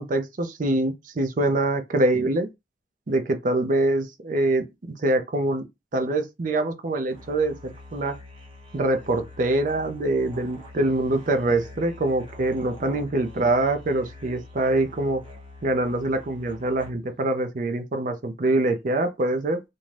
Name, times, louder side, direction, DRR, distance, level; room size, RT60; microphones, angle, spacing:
voice 1, 0.0-2.5 3.1-5.7 5.9-8.2 8.7-15.2 15.6-19.6, right 2 dB, 45° right, 0.5 m, -24 dB
Musical instrument, 7.1-17.2, left 2 dB, 30° right, 0.9 m, -45 dB
2.6 x 2.2 x 3.2 m
head